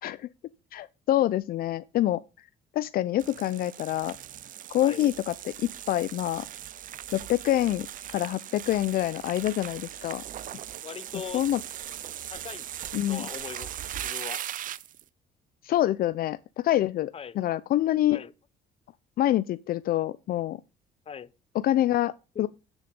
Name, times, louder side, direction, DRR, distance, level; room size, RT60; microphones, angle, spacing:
voice 1, 0.7-2.2 2.7-4.2 4.7-6.5 7.1-10.2 11.3-11.6 12.9-13.3 15.6-18.2 19.2-20.6 21.5-22.5, left 13 dB, 60° left, 0.6 m, -26 dB
sound 1, 3.2-15.0, right 11 dB, 55° right, 0.7 m, -39 dB
voice 2, 10.8-11.4 12.3-12.6 13.1-13.7 14.0-14.4 17.1-17.4 18.1-18.3 21.1-21.3 22.3-22.5, left 7 dB, 35° left, 1.0 m, -40 dB
13.5 x 6.5 x 5.3 m
cardioid pair, 110°, 17 cm